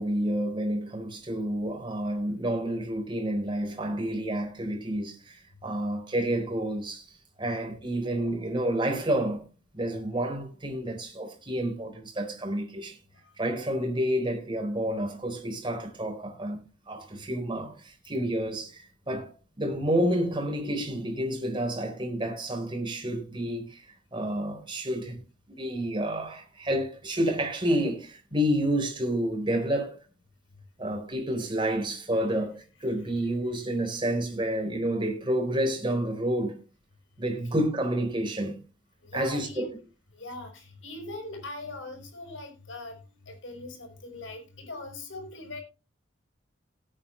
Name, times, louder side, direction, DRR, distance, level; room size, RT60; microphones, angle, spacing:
voice 1, 0.0-7.0 7.4-9.4 9.7-13.0 13.4-23.8 24.1-25.2 25.5-30.0 30.8-36.6 37.2-38.6 39.1-39.7, right 1 dB, 25° right, 4.1 m, -29 dB
voice 2, 39.1-39.7 40.2-43.0 43.3-45.6, left 2 dB, 75° left, 5.1 m, -40 dB
17.5 x 8.9 x 3.2 m
head